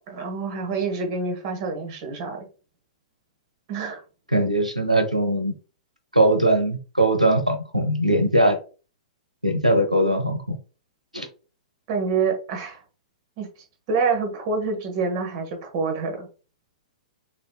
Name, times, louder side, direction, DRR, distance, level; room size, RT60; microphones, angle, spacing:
voice 1, 0.1-2.4 3.7-4.0 8.1-8.2 11.9-12.8 13.4-13.5 13.9-16.3, right 4 dB, 40° right, 4 dB, 1.6 m, -27 dB
voice 2, 4.3-5.5 6.1-8.6 9.4-10.6 11.1-11.3, right 1 dB, 90° right, 6 dB, 0.8 m, -20 dB
6.7 x 3.2 x 2.3 m, 0.35 s
figure-of-eight pair, 110°, 4 cm